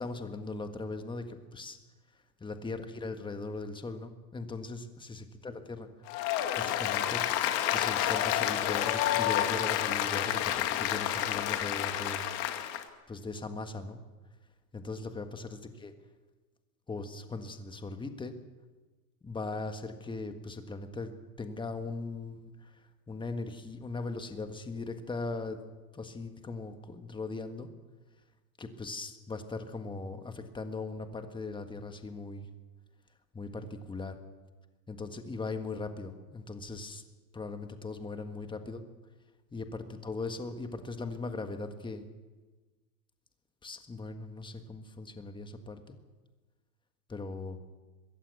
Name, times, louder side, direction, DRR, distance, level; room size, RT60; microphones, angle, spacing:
voice 1, 0.0-1.8 2.4-5.9 6.5-7.2 7.7-12.2 13.1-14.0 14.7-15.9 16.9-18.3 19.2-25.6 25.9-27.7 28.6-32.5 33.3-34.2 34.9-37.0 37.3-38.8 39.5-42.0 43.6-46.0 47.1-47.6, left 3 dB, 10° left, 8 dB, 1.6 m, -39 dB
Applause, 6.1-12.8, left 12 dB, 55° left, 2.2 m, -29 dB
22.5 x 16.0 x 8.3 m, 1.3 s
supercardioid pair, 130°, 48 cm